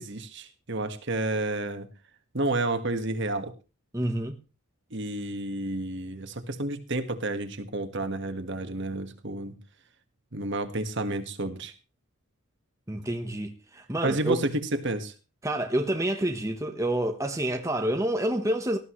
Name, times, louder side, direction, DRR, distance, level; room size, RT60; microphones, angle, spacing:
voice 1, 0.0-1.9 2.3-3.5 4.9-9.6 10.3-11.7 14.0-15.1, right 2 dB, 50° right, 1.7 m, -30 dB
voice 2, 3.9-4.4 12.9-14.4 15.4-18.8, right 1 dB, 15° right, 1.1 m, -28 dB
19.0 x 14.0 x 3.2 m
head